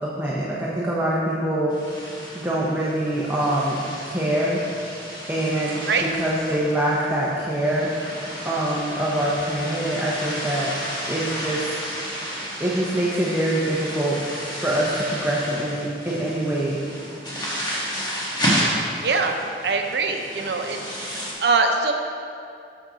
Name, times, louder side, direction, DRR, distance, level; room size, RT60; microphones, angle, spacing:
voice 1, 0.0-1.8 2.3-3.8 4.0-4.6 5.3-7.9 8.4-10.7 11.1-11.9 12.6-14.2 14.6-16.8, right 1 dB, 10° right, -6 dB, 0.7 m, -24 dB
sound 1, 1.7-21.3, equal, 25° left, 1.5 m, -31 dB
voice 2, 19.0-19.4 19.6-21.9, right 4 dB, 70° right, 4 dB, 0.7 m, -23 dB
6.6 x 6.4 x 5.0 m, 2.5 s
head